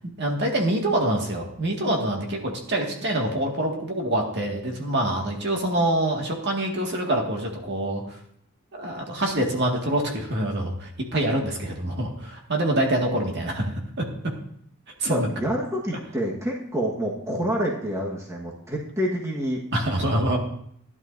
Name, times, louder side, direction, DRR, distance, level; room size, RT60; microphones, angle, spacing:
voice 1, 0.2-8.2 8.7-14.1 15.0-15.3 19.7-20.4, right 1 dB, 55° right, 1 dB, 1.9 m, -25 dB
voice 2, 15.1-19.6, equal, 15° right, -2 dB, 1.4 m, -27 dB
16.0 x 11.0 x 2.7 m, 0.68 s
head